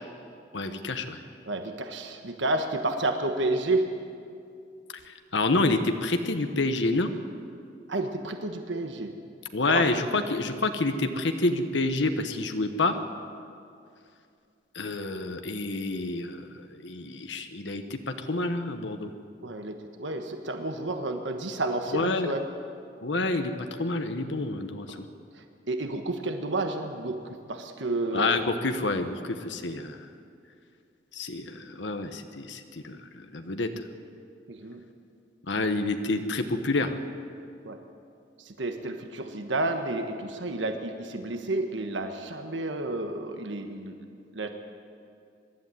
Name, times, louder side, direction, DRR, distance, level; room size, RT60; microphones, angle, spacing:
voice 1, 0.5-1.2 5.0-7.1 9.5-13.0 14.7-19.1 21.9-22.3 23.0-23.5 23.8-25.0 28.1-30.1 31.1-33.7 35.5-37.0, left 2 dB, 70° left, 7 dB, 1.1 m, -28 dB
voice 2, 1.5-3.9 7.9-9.1 9.7-9.8 10.1-10.2 19.4-22.4 24.9-25.0 25.7-28.3 34.5-34.8 37.6-37.8 38.5-43.9 44.3-44.5, right 2 dB, 75° right, 6 dB, 1.4 m, -30 dB
23.0 x 12.0 x 9.8 m, 2.4 s
head